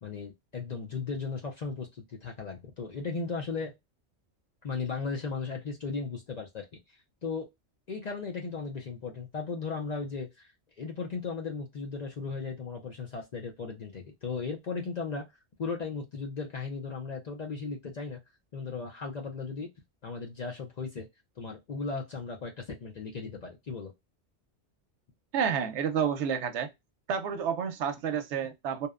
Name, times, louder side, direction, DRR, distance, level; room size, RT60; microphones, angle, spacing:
voice 1, 0.0-3.7 4.6-6.7 7.2-7.5 7.9-10.5 10.8-15.3 15.6-18.2 18.5-19.7 20.0-21.1 21.4-23.9, left 4 dB, 50° left, 0.5 m, -36 dB
voice 2, 25.3-26.7 27.1-28.9, right 7 dB, 90° right, 0.9 m, -30 dB
2.8 x 2.1 x 2.3 m
omnidirectional pair, 1.2 m